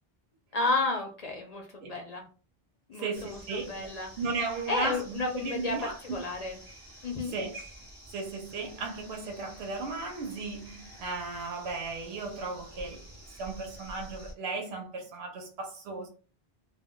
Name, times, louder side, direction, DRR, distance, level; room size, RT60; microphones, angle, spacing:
voice 1, 0.5-2.3 2.9-4.1 4.7-6.6 7.0-7.3, left 3 dB, 50° left, 0.6 m, -32 dB
voice 2, 3.0-3.9 4.2-6.2 7.3-7.6 8.1-13.1 13.4-16.1, right 3 dB, 85° right, 0.9 m, -35 dB
sound 1, 3.1-14.3, right 1 dB, 25° right, 0.7 m, -49 dB
2.2 x 2.2 x 3.6 m
omnidirectional pair, 1.0 m